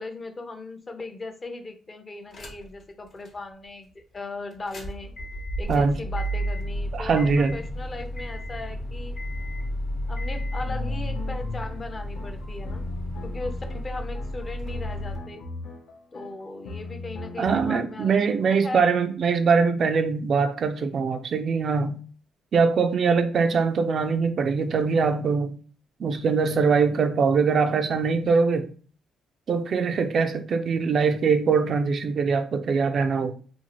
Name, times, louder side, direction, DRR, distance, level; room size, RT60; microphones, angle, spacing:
voice 1, 0.0-5.1 5.6-9.2 10.1-12.9 13.2-15.4 16.1-18.1 18.6-18.8, left 2 dB, 30° left, 0.6 m, -38 dB
sound 1, 2.3-2.8 3.2-3.3 4.5-15.2, equal, 55° left, 0.9 m, -32 dB
voice 2, 5.7-6.0 6.9-7.6 17.4-22.0 22.5-25.6 26.0-28.7 29.5-33.3, right 5 dB, 55° right, 0.3 m, -22 dB
sound 2, 10.7-18.6, left 3 dB, 75° left, 0.5 m, -38 dB
2.6 x 2.4 x 2.9 m
cardioid pair, 90°, 0 cm